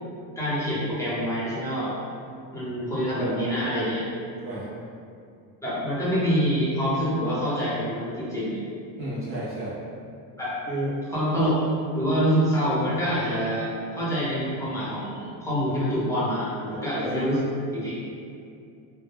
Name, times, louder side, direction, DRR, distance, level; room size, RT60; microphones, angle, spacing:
voice 1, 0.4-1.9 2.5-4.0 5.6-8.6 10.4-10.5 11.1-11.6 11.9-17.5 17.7-18.0, equal, 10° left, -10 dB, 0.7 m, -26 dB
voice 2, 9.0-9.8 10.7-11.0 17.0-17.3, right 1 dB, 35° right, -8 dB, 0.6 m, -31 dB
2.1 x 2.1 x 3.4 m, 2.4 s
cardioid pair, 115°, 39 cm